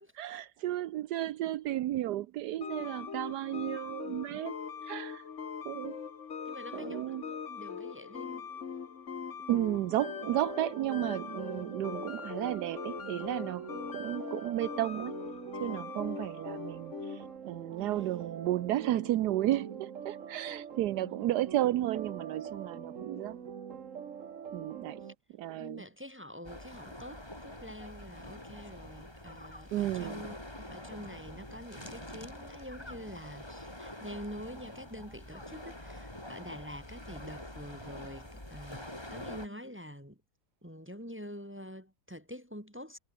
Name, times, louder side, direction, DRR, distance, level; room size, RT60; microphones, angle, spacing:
voice 1, 0.1-5.2 5.6-6.0 6.7-7.2 9.5-13.7 13.9-15.1 15.6-23.4 24.5-25.0 25.4-25.8 29.7-30.2, right 14 dB, 80° right, 1.3 m, -33 dB
sound 1, 2.6-17.4, left 6 dB, 50° left, 1.6 m, -41 dB
voice 2, 6.5-8.5 17.8-17.9 20.9-21.3 25.0-25.1 25.6-40.2 40.6-43.0, equal, 5° right, 2.0 m, -46 dB
sound 2, 10.2-25.1, right 7 dB, 50° right, 1.5 m, -44 dB
sound 3, 26.4-39.5, left 1 dB, 15° left, 4.2 m, -46 dB
omnidirectional pair, 1.7 m